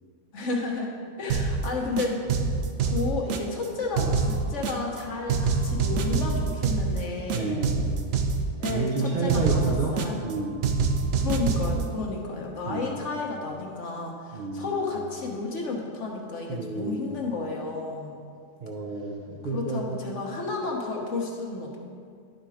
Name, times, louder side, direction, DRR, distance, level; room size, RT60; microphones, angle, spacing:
voice 1, 0.3-0.9 1.2-2.2 2.8-7.6 8.6-10.2 11.2-18.1 19.5-21.8, left 3 dB, 65° left, 0 dB, 1.4 m, -32 dB
sound 1, 1.3-1.7 2.0-3.7 4.0-5.0 5.3-7.0 7.3-9.0 9.3-10.3 10.6-11.8, right 5 dB, 85° right, 1.0 m, -26 dB
voice 2, 7.3-7.9 8.7-10.7 12.6-13.1 14.3-14.8 16.5-17.1 18.6-19.9, right 3 dB, 45° right, -2 dB, 0.8 m, -30 dB
11.5 x 4.4 x 4.9 m, 2.2 s
omnidirectional pair, 1.3 m